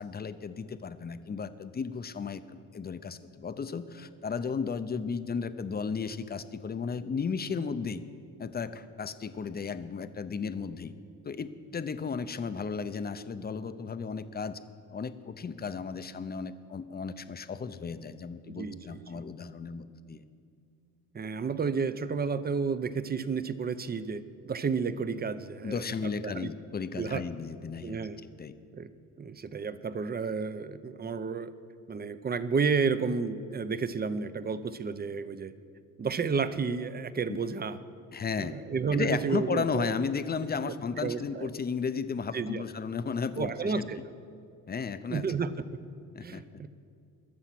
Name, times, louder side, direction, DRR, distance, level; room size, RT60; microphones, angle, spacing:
voice 1, 0.0-8.0 8.4-10.9 11.2-14.6 14.9-20.2 25.6-28.0 28.4-28.5 37.3-37.4 38.1-38.6 38.9-43.8 44.7-45.3 46.1-46.4, left 5 dB, 25° left, 12 dB, 0.6 m, -34 dB
voice 2, 18.5-19.2 21.1-26.5 27.0-27.2 27.8-28.2 28.7-28.9 29.2-31.5 31.9-35.5 36.0-37.8 38.4-39.9 40.6-40.7 41.0-41.5 42.3-42.6 43.4-44.0 45.1-45.8 46.2-46.7, right 5 dB, 25° right, 14 dB, 0.6 m, -31 dB
21.0 x 7.2 x 6.0 m, 2.4 s
cardioid pair, 105°, 37 cm